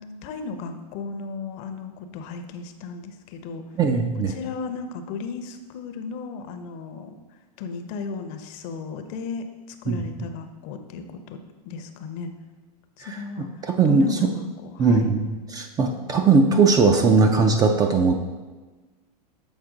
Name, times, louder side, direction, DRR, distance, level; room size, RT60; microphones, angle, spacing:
voice 1, 0.0-3.6 4.3-11.4 11.7-12.3 13.0-15.1, left 4 dB, 45° left, 7 dB, 0.6 m, -35 dB
voice 2, 3.8-4.3 9.9-10.0 13.0-13.2 13.6-14.1 14.8-18.1, right 4 dB, 20° right, 4 dB, 0.4 m, -19 dB
7.2 x 4.3 x 3.8 m, 1.3 s
hypercardioid pair, 125°, 21 cm